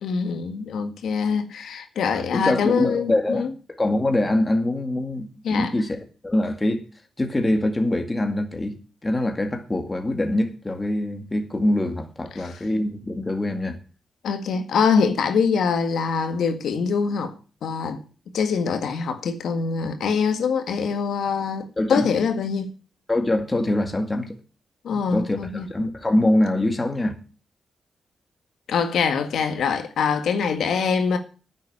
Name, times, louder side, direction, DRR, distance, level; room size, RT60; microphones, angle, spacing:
voice 1, 0.0-3.5 5.4-5.7 12.3-12.6 14.2-17.3 17.6-18.0 18.3-22.7 24.8-25.7 28.7-31.2, left 6 dB, 85° left, 1.7 m, -24 dB
voice 2, 2.1-3.5 3.8-6.0 6.2-6.8 7.2-8.8 9.0-13.8 21.8-22.1 23.1-24.4 24.9-27.1, left 1 dB, 20° left, 2.0 m, -24 dB
10.0 x 7.5 x 8.6 m
wide cardioid pair, 130°, 0 cm